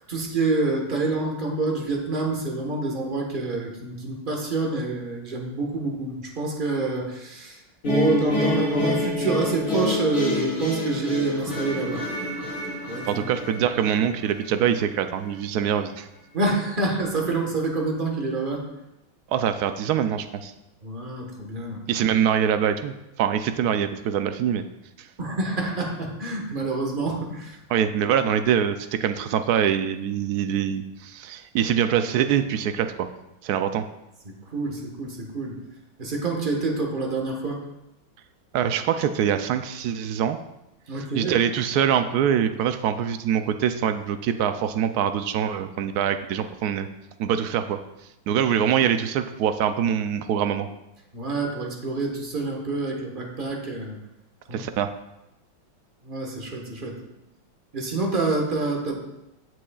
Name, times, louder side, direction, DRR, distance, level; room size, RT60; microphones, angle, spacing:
voice 1, 0.1-7.6 7.9-12.0 12.9-13.2 16.3-18.6 20.8-21.8 25.2-27.6 34.5-35.6 36.0-37.6 40.9-41.4 51.1-54.0 54.5-54.6 56.0-57.0 57.7-58.9, right 3 dB, 30° right, 1 dB, 1.3 m, -27 dB
sound 1, 7.8-14.9, left 2 dB, 50° left, 3.7 m, -27 dB
voice 2, 13.1-16.1 19.3-20.5 21.9-24.6 25.0-25.1 27.7-33.1 33.4-33.8 38.5-40.4 41.1-46.9 47.2-47.8 48.3-50.7 54.5-54.9, right 9 dB, 75° right, 9 dB, 0.9 m, -24 dB
15.5 x 6.2 x 2.4 m, 0.90 s
omnidirectional pair, 2.1 m